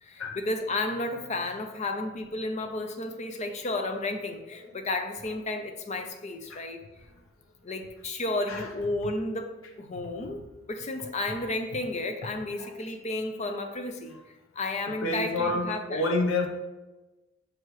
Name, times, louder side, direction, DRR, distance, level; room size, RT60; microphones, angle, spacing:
voice 1, 0.0-6.8 7.6-16.1, left 2 dB, 35° left, 5 dB, 0.6 m, -32 dB
voice 2, 14.8-16.5, left 2 dB, 80° left, 3 dB, 0.9 m, -29 dB
6.4 x 4.6 x 3.1 m, 1.1 s
head